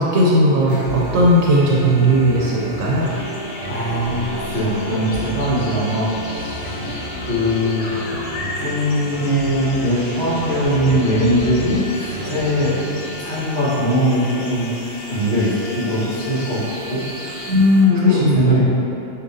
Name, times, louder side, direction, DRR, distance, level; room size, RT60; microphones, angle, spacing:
voice 1, 0.0-3.1 17.5-18.6, equal, 80° right, -5 dB, 1.0 m, -16 dB
sound 1, 0.6-13.1, right 1 dB, 55° right, 0.8 m, -31 dB
sound 2, 0.7-17.8, left 2 dB, 15° left, 0.7 m, -38 dB
sound 3, 3.0-17.5, left 1 dB, 90° left, 1.2 m, -36 dB
voice 2, 3.7-6.1 6.8-8.0 8.5-12.7 13.2-14.7 15.1-16.6 16.9-17.0 17.9-18.6, equal, 55° left, -12 dB, 1.9 m, -21 dB
6.8 x 2.3 x 2.6 m, 2.9 s
omnidirectional pair, 1.4 m